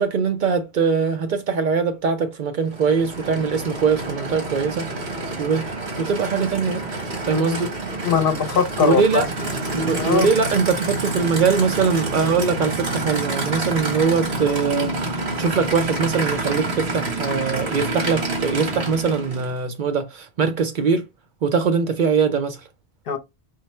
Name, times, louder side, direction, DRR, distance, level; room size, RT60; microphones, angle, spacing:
voice 1, 0.0-6.8 7.3-7.7 8.8-9.3 9.7-21.0 21.4-22.6, right 5 dB, 60° right, 0.6 m, -22 dB
Aircraft / Idling, 2.6-19.6, right 2 dB, 90° right, 1.5 m, -28 dB
voice 2, 8.0-9.2 10.0-10.3 23.1-23.2, left 6 dB, 65° left, 0.9 m, -21 dB
4.8 x 2.1 x 4.2 m
omnidirectional pair, 1.1 m